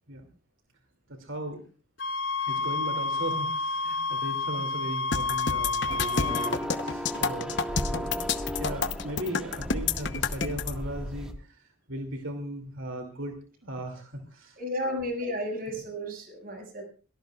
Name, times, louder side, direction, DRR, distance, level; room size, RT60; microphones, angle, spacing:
voice 1, 1.1-1.6 2.5-8.2 8.5-13.4 13.6-14.6 14.8-14.9, right 1 dB, 80° right, 3 dB, 2.7 m, -37 dB
sound 1, 2.0-6.6, left 3 dB, 75° left, 4.7 m, -29 dB
sound 2, 5.1-10.7, left 5 dB, 60° left, 1.0 m, -29 dB
sound 3, 5.9-11.3, equal, 5° right, 1.7 m, -36 dB
voice 2, 14.6-16.8, equal, 45° right, 2 dB, 6.5 m, -33 dB
23.0 x 18.0 x 2.4 m, 0.40 s
head